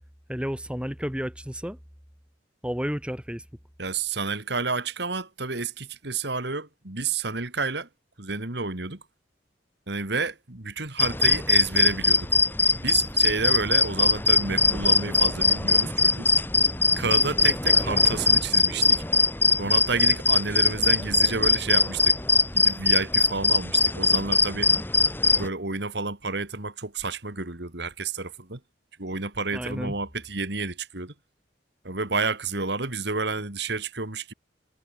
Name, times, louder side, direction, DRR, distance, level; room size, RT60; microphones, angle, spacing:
voice 1, 0.3-1.8 2.6-3.4 29.5-30.0, equal, 5° right, 2.9 m, -31 dB
voice 2, 3.8-7.9 8.2-9.0 9.9-12.3 12.8-16.3 17.0-19.0 19.6-22.2 22.5-24.7 25.4-28.6 29.0-31.1 31.8-34.3, right 4 dB, 60° right, 2.7 m, -30 dB
sound 1, 11.0-25.5, left 3 dB, 10° left, 1.3 m, -21 dB
head